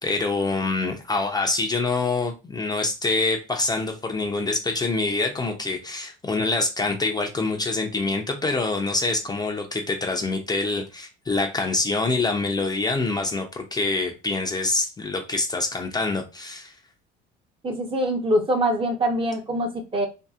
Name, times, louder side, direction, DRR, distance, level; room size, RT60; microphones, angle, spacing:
voice 1, 0.0-16.7, left 3 dB, 20° left, 2 dB, 0.6 m, -25 dB
voice 2, 17.6-20.1, right 1 dB, 25° right, 3 dB, 0.8 m, -24 dB
2.7 x 2.6 x 2.4 m, 0.28 s
cardioid pair, 100°, 20 cm